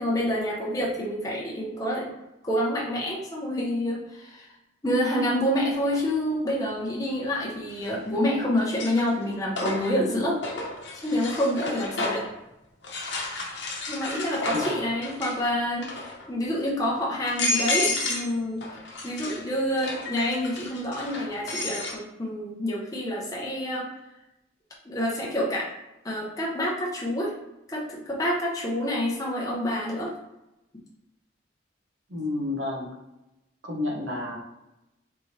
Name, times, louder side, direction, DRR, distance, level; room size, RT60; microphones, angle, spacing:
voice 1, 0.0-2.1 2.4-4.5 4.8-10.4 11.0-12.3 13.9-18.7 19.0-23.9 24.8-25.7 26.0-27.4 27.7-30.1, equal, 20° left, -4 dB, 0.6 m, -27 dB
sound 1, 5.9-6.0 7.7-8.2 8.6-12.3 12.8-15.5 15.8-16.3 16.8-16.9 17.2-18.3 18.6-22.0, left 2 dB, 70° left, 0.9 m, -31 dB
voice 2, 14.5-14.9 32.1-32.9 33.6-34.4, left 2 dB, 90° right, -2 dB, 1.0 m, -30 dB
3.5 x 2.8 x 3.1 m, 0.94 s
head